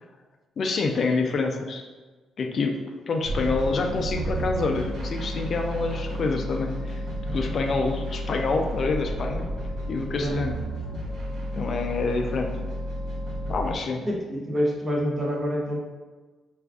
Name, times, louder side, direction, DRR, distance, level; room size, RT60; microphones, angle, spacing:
voice 1, 0.6-1.9 2.4-2.8 3.1-7.0 7.3-9.5 9.9-10.6 11.5-12.6 13.5-14.0, left 3 dB, 50° left, 3 dB, 0.3 m, -27 dB
sound 1, 3.2-13.8, equal, 75° right, 1.1 m, -31 dB
voice 2, 14.0-15.8, equal, 30° right, -1 dB, 0.7 m, -27 dB
2.4 x 2.3 x 3.4 m, 1.3 s
cardioid pair, 90°, 0 cm